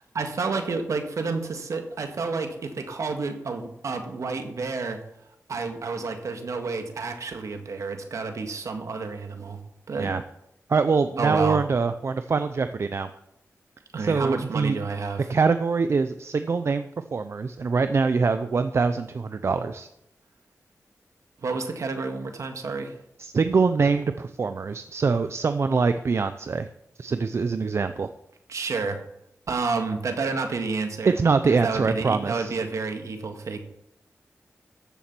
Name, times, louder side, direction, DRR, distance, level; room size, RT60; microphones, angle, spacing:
voice 1, 0.1-5.0 5.5-9.6 9.9-10.1 11.2-11.6 13.9-15.3 21.4-22.9 28.5-29.0 29.5-31.2 31.5-33.6, right 4 dB, 75° right, 6 dB, 1.8 m, -30 dB
voice 2, 10.7-13.1 14.0-14.8 15.3-19.9 23.2-26.7 27.0-28.1 31.0-32.6, right 4 dB, 55° right, 10 dB, 0.6 m, -24 dB
14.0 x 7.2 x 6.1 m, 0.79 s
wide cardioid pair, 80°, 5 cm